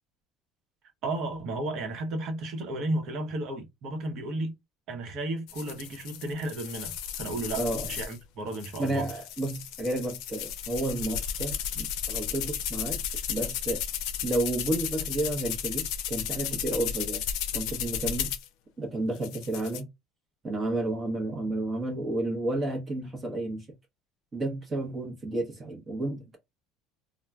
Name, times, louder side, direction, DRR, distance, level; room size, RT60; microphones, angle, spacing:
voice 1, 1.0-4.5 4.9-9.1, right 2 dB, 55° right, 0.9 m, -33 dB
sound 1, 5.5-8.2 8.5-18.5 19.2-19.8, left 9 dB, 70° left, 0.4 m, -34 dB
voice 2, 7.6-7.9 8.8-13.0 13.3-13.8 14.2-17.2 17.5-18.3 18.8-19.9 20.4-23.7 24.3-26.4, right 2 dB, 25° right, 0.9 m, -31 dB
3.1 x 2.1 x 2.3 m
supercardioid pair, 115°, 0 cm